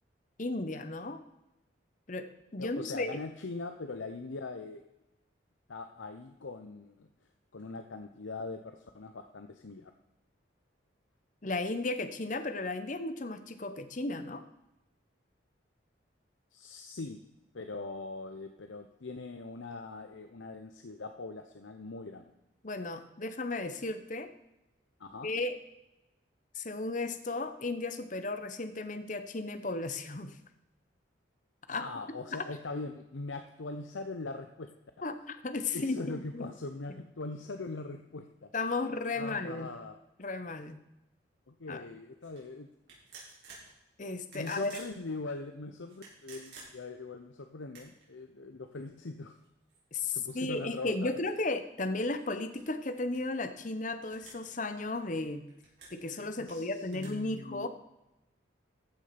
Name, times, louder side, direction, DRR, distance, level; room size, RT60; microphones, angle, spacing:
voice 1, 0.4-1.2 2.1-2.3 2.5-3.2 11.4-14.4 22.6-24.3 25.2-25.5 26.5-30.4 31.7-31.9 35.0-36.5 38.5-39.7 40.2-40.8 41.7-41.8 44.0-44.7 49.9-55.4 55.9-57.7, left 2 dB, 40° left, 10 dB, 0.8 m, -34 dB
voice 2, 2.6-4.8 5.7-7.1 7.5-9.9 16.5-17.2 17.5-22.3 25.0-25.3 31.8-34.7 35.7-38.5 39.1-40.0 41.5-42.7 44.3-49.4 50.1-51.1 56.4-57.7, left 3 dB, 85° left, 6 dB, 0.8 m, -41 dB
sound 1, 42.2-42.4 42.9-43.7 44.2-44.9 45.8-47.0 47.6-48.1 48.7-48.8 49.3-51.4 51.8-53.4 54.1-54.5 54.8-56.0 56.5-57.1, right 4 dB, 60° right, 5.0 m, -53 dB
14.5 x 6.4 x 5.8 m, 0.94 s
head